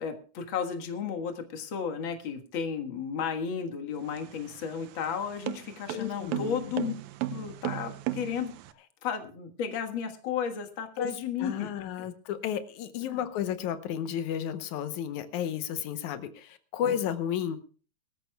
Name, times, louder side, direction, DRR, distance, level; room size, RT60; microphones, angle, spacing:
voice 1, 0.0-6.9 7.3-8.5 9.0-11.7 12.0-12.1 13.0-13.2, left 7 dB, 50° left, 5 dB, 2.0 m, -33 dB
sound 1, 4.0-8.7, right 13 dB, 85° right, 2.2 m, -36 dB
voice 2, 5.9-6.7 11.0-11.1 11.4-17.6, left 9 dB, 85° left, 10 dB, 2.3 m, -32 dB
23.5 x 13.5 x 2.3 m, 0.40 s
omnidirectional pair, 3.3 m